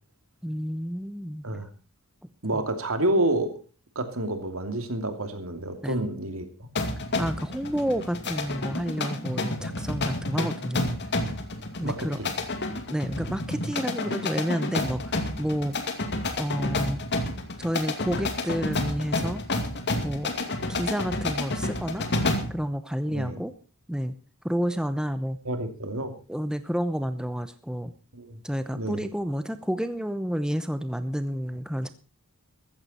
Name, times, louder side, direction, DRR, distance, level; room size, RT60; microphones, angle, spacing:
voice 1, 0.4-1.7 2.5-2.6 5.8-6.1 7.2-11.0 11.8-12.2 12.9-15.8 16.4-17.0 17.6-19.4 20.0-20.4 20.7-22.1 22.5-23.5 23.9-24.1 24.4-25.4 26.3-27.9 28.4-31.9, equal, 5° right, 10 dB, 0.8 m, -30 dB
voice 2, 2.4-3.6 3.9-6.5 11.8-12.3 14.1-14.2 23.1-23.4 25.4-26.1 28.1-28.4 28.7-29.0, right 1 dB, 65° right, 7 dB, 2.8 m, -29 dB
sound 1, 6.8-22.6, left 2 dB, 50° left, 2.5 m, -30 dB
14.5 x 14.5 x 4.3 m, 0.35 s
head